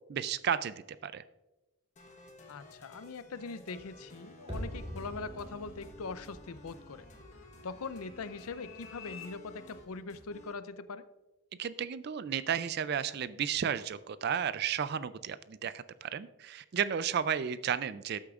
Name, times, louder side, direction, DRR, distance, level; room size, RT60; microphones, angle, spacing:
voice 1, 0.1-1.2 11.6-18.2, right 8 dB, 45° right, 15 dB, 0.3 m, -33 dB
sound 1, 2.0-10.5, left 1 dB, 35° left, 1.1 m, -54 dB
voice 2, 2.5-7.1 7.6-11.0, left 4 dB, 80° left, 13 dB, 0.5 m, -42 dB
sound 2, 4.5-9.4 9.7-9.8, equal, 30° right, 2.8 m, -46 dB
sound 3, 5.3-9.3, left 8 dB, 65° left, 1.0 m, -55 dB
13.0 x 8.3 x 2.4 m, 1.0 s
head